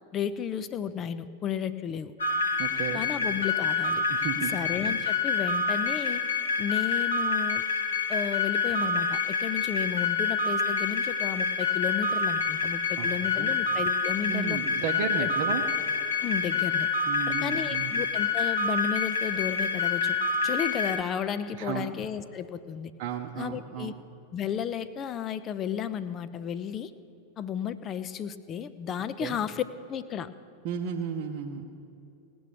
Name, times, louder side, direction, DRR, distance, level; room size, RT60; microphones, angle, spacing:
voice 1, 0.1-2.2 2.9-4.0 4.5-6.2 6.6-7.6 8.1-14.6 15.2-15.3 16.2-16.9 17.3-20.2 20.4-22.9 23.4-23.9 24.3-26.9 27.4-29.6 29.9-30.3, left 8 dB, 30° left, 13 dB, 0.6 m, -33 dB
sound 1, 2.2-21.0, left 4 dB, 70° left, 0.9 m, -27 dB
voice 2, 2.6-3.0 4.1-4.5 13.0-13.1 13.4-13.5 14.3-15.6 17.1-17.9 21.6-21.9 23.0-23.9 29.2-29.4 30.6-31.6, right 7 dB, 45° right, 1 dB, 0.8 m, -33 dB
18.0 x 6.1 x 8.5 m, 2.7 s
figure-of-eight pair, 90°, 0 cm